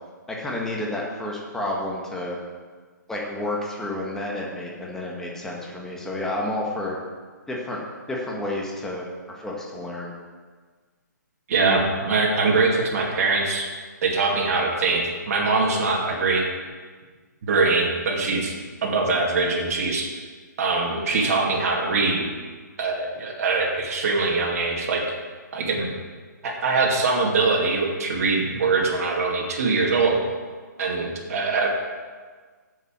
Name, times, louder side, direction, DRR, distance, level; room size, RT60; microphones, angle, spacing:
voice 1, 0.3-2.4 3.1-7.0 7.5-9.1 9.3-10.1, left 1 dB, 5° left, -3 dB, 1.6 m, -30 dB
voice 2, 11.5-16.4 17.5-18.5 18.8-20.1 20.6-22.2 22.8-25.0 25.5-25.9 26.4-30.2 30.8-31.7, right 3 dB, 50° right, -1 dB, 2.4 m, -23 dB
8.2 x 7.3 x 7.4 m, 1.5 s
hypercardioid pair, 150°, 10 cm